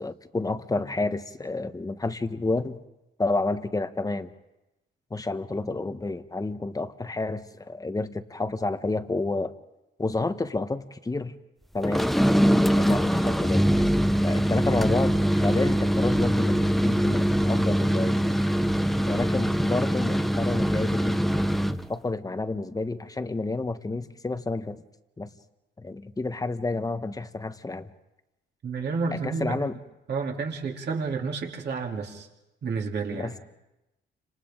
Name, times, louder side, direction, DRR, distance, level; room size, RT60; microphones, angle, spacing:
voice 1, 0.0-2.8 3.2-4.3 5.1-9.5 10.0-11.3 11.7-12.1 12.8-13.7 14.2-18.4 19.1-21.2 21.9-24.8 25.2-25.3 25.8-27.9 29.1-29.8 33.1-33.3, left 3 dB, 20° left, 10 dB, 1.2 m, -30 dB
sound 1, 11.8-21.9, equal, ahead, 0.7 m, -23 dB
voice 2, 28.6-29.6 30.1-32.3 32.6-33.3, right 4 dB, 55° right, 0 dB, 3.3 m, -30 dB
30.0 x 27.0 x 3.9 m, 0.96 s
cardioid pair, 90°, 20 cm